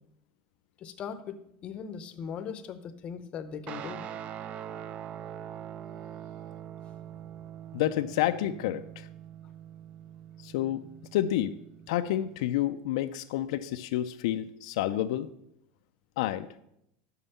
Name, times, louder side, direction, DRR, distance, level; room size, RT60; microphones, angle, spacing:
voice 1, 0.8-4.0, left 7 dB, 35° left, 11 dB, 0.6 m, -39 dB
Guitar, 3.7-12.4, right 10 dB, 35° right, 0.3 m, -43 dB
voice 2, 7.7-9.1 10.4-10.8 11.1-11.6 11.9-15.3 16.2-16.5, left 13 dB, 80° left, 9 dB, 0.3 m, -29 dB
6.1 x 5.5 x 6.7 m, 0.79 s
supercardioid pair, 145°, 3 cm